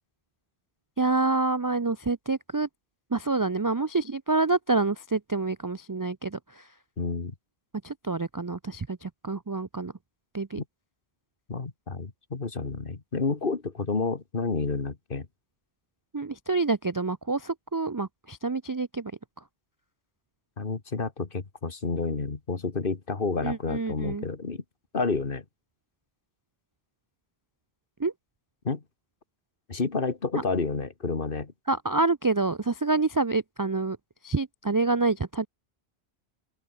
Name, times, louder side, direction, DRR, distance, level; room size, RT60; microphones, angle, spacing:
voice 1, 1.0-2.7 3.1-6.6 7.8-9.9 10.3-10.6 16.1-19.1 23.4-24.2 28.0-28.1 30.3-30.4 31.7-34.0 34.2-35.5, right 3 dB, 30° right, 0.3 m, -27 dB
voice 2, 7.0-7.3 11.5-15.3 20.6-24.6 24.9-25.4 28.6-28.8 29.7-31.5, left 4 dB, 55° left, 2.0 m, -30 dB
open air
omnidirectional pair, 1.1 m